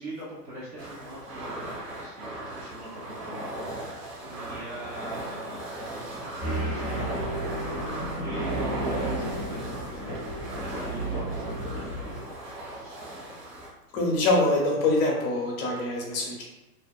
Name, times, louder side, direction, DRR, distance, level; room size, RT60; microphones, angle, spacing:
voice 1, 0.0-10.1 10.5-13.3, right 1 dB, 85° right, -11 dB, 1.2 m, -42 dB
sound 1, 0.8-13.7, right 1 dB, 55° right, 1.2 m, -38 dB
sound 2, 6.4-12.2, right 1 dB, ahead, 0.3 m, -32 dB
voice 2, 13.9-16.4, left 2 dB, 35° left, -2 dB, 0.6 m, -24 dB
2.6 x 2.2 x 2.2 m, 1.0 s
figure-of-eight pair, 105°, 48 cm